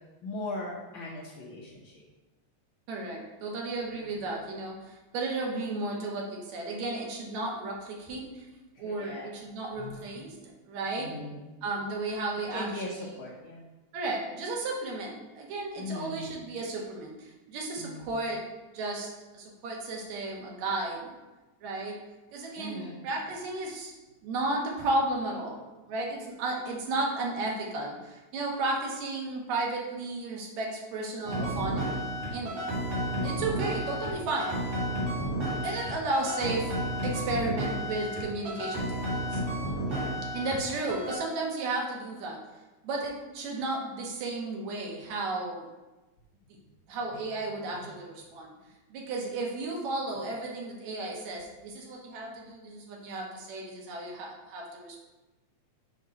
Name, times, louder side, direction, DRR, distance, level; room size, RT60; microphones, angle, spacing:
voice 1, 0.2-1.9 4.0-4.1 8.8-9.3 9.8-10.1 11.0-11.5 12.5-13.6 15.8-16.4 17.8-18.1 22.5-23.0 39.9-40.1, left 2 dB, 65° left, -4 dB, 1.3 m, -39 dB
voice 2, 2.9-8.5 8.8-11.1 11.6-13.3 13.9-18.4 18.7-19.1 19.3-21.2 21.6-22.0 22.3-23.9 24.2-32.6 33.2-34.5 35.6-36.7 37.0-39.4 40.3-42.4 42.8-45.7 46.9-48.5 48.9-55.0, right 2 dB, 70° right, -1 dB, 2.3 m, -34 dB
sound 1, 31.2-40.6 40.9-41.2, equal, 55° right, 2.4 m, -32 dB
6.5 x 3.8 x 5.2 m, 1.1 s
omnidirectional pair, 3.4 m